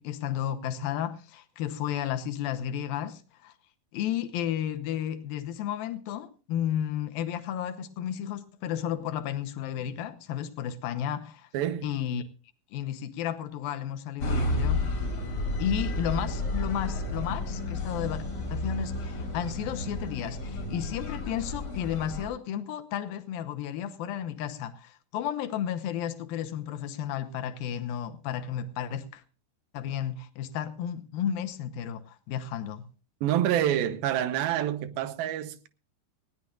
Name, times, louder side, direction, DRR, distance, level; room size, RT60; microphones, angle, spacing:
voice 1, 0.0-3.5 3.9-11.5 11.8-12.2 12.7-14.8 15.6-18.2 18.5-29.2 29.7-32.8, left 10 dB, 80° left, 2.7 m, -33 dB
voice 2, 11.5-11.9 33.2-35.7, right 11 dB, 80° right, 2.8 m, -27 dB
sound 1, 14.2-22.3, left 2 dB, 40° left, 4.3 m, -31 dB
19.5 x 16.5 x 2.5 m
omnidirectional pair, 4.3 m